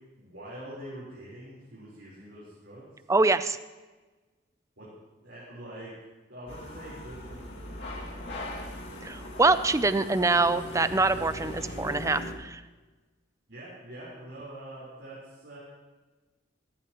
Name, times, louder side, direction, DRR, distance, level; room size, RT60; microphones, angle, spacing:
voice 1, 0.2-2.9 4.8-4.9 5.2-5.9 6.3-8.7 13.5-15.6, right 1 dB, 70° right, -8 dB, 4.0 m, -45 dB
voice 2, 3.1-3.6 9.0-12.6, right 3 dB, 15° right, 12 dB, 0.4 m, -24 dB
sound 1, 6.5-12.3, left 1 dB, 65° left, 2.3 m, -39 dB
16.5 x 14.5 x 3.0 m, 1.2 s
head